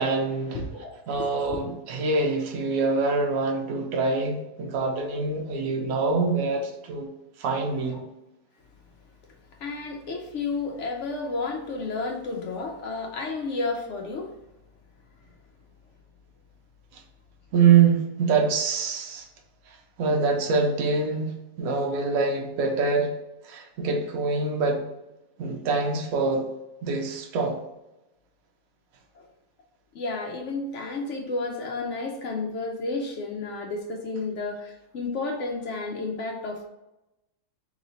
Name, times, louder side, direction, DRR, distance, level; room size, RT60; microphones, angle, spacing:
voice 1, 0.0-0.6 1.1-7.1 7.4-8.0 17.5-19.3 20.0-21.3 21.6-23.1 23.4-24.8 25.4-26.5 26.8-27.6, right 4 dB, 60° right, 1.0 m, -24 dB
voice 2, 0.5-1.6 9.6-14.3 29.2-29.3 29.9-36.7, left 3 dB, 75° left, 0.6 m, -32 dB
3.1 x 3.0 x 3.9 m
omnidirectional pair, 1.9 m